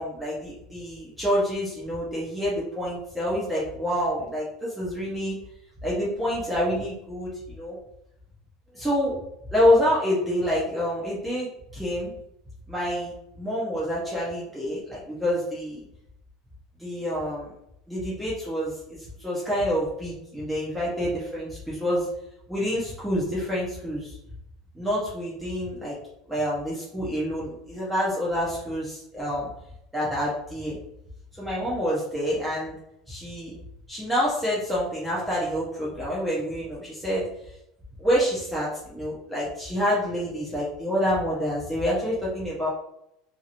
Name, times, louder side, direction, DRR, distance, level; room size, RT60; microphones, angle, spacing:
voice 1, 0.0-5.4 5.8-7.8 8.7-9.2 9.5-12.1 12.7-15.8 16.8-17.5 17.9-22.1 22.5-24.2 24.7-25.9 26.3-29.5 29.9-30.8 31.3-32.8 33.1-33.6 33.9-37.2 38.0-42.7, equal, 5° right, -7 dB, 0.8 m, -27 dB
2.8 x 2.6 x 2.5 m, 0.78 s
supercardioid pair, 140°, 0 cm